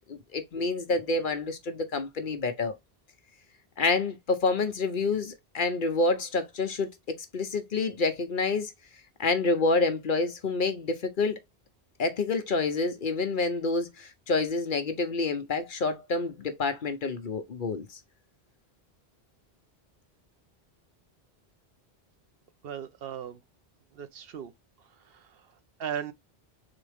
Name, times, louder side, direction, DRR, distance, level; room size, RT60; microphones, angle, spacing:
voice 1, 0.1-2.7 3.8-8.7 9.2-11.4 12.0-18.0, left 3 dB, 55° left, 0.9 m, -28 dB
voice 2, 22.6-23.4 24.0-24.5 25.8-26.1, right 9 dB, 65° right, 0.8 m, -36 dB
3.8 x 3.6 x 3.4 m
omnidirectional pair, 1.1 m